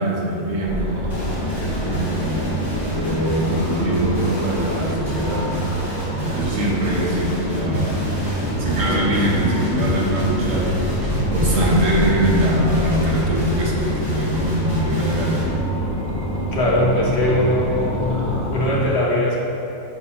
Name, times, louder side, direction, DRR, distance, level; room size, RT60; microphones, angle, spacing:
voice 1, 0.0-2.4 2.9-5.5 6.2-8.1 8.6-10.8 11.3-15.4, right 1 dB, 75° right, -4 dB, 1.5 m, -23 dB
sound 1, 0.7-18.7, right 1 dB, 35° right, 1.2 m, -26 dB
sound 2, 1.1-15.4, equal, 15° left, 1.5 m, -30 dB
sound 3, 7.7-7.8 8.3-9.2 9.6-10.7 11.0-13.1, left 1 dB, 20° right, 1.1 m, -30 dB
voice 2, 16.5-18.1 18.5-19.4, left 1 dB, 55° left, -4 dB, 1.2 m, -20 dB
7.7 x 2.9 x 5.7 m, 2.9 s
omnidirectional pair, 1.4 m